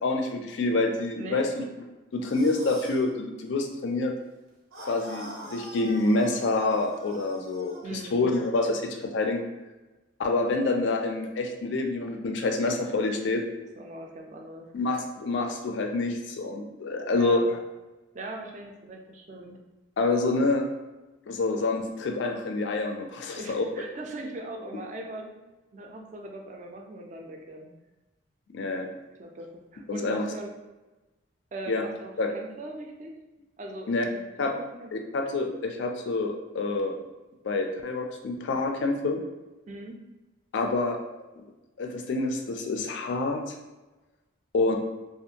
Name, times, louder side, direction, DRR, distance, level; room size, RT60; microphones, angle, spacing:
voice 1, 0.0-1.6 2.1-4.1 4.8-9.4 10.2-13.4 14.7-17.4 20.0-20.6 21.3-23.7 28.5-28.9 29.9-30.2 31.7-31.8 32.2-32.3 33.9-34.1 34.4-34.5 34.9-36.9 37.4-39.2 40.5-41.0 41.4-41.5 41.8-43.5 44.5-44.8, left 3 dB, 65° left, 4 dB, 0.4 m, -27 dB
voice 2, 1.2-1.5 7.8-8.3 13.8-14.7 17.1-17.5 18.1-19.6 23.3-25.3 25.7-27.7 29.2-30.5 31.5-33.1 33.6-34.2 34.5-34.9 39.7-40.0, right 2 dB, 35° right, 1 dB, 0.3 m, -40 dB
sound 1, 2.2-3.1 4.7-7.9, equal, 90° right, 0.6 m, -44 dB
2.5 x 2.3 x 2.7 m, 1.1 s
head